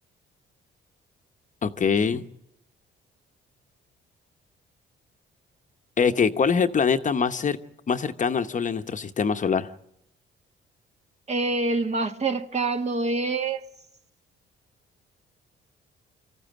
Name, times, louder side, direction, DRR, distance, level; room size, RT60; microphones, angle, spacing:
voice 1, 1.6-2.2 6.0-7.6 7.9-9.7, left 6 dB, 40° left, 0.9 m, -23 dB
voice 2, 11.3-13.6, right 3 dB, 35° right, 1.4 m, -26 dB
24.0 x 14.5 x 9.1 m
cardioid pair, 90°, 20 cm